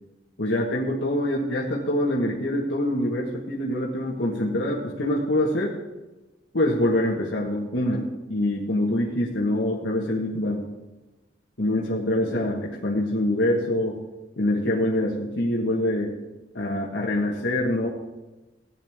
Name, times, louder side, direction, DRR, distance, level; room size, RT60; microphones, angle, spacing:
voice 1, 0.4-5.7 6.5-10.6 11.6-14.0 14.4-16.1 16.5-17.9, left 1 dB, 85° left, -3 dB, 1.6 m, -25 dB
17.0 x 10.0 x 3.6 m, 1.1 s
head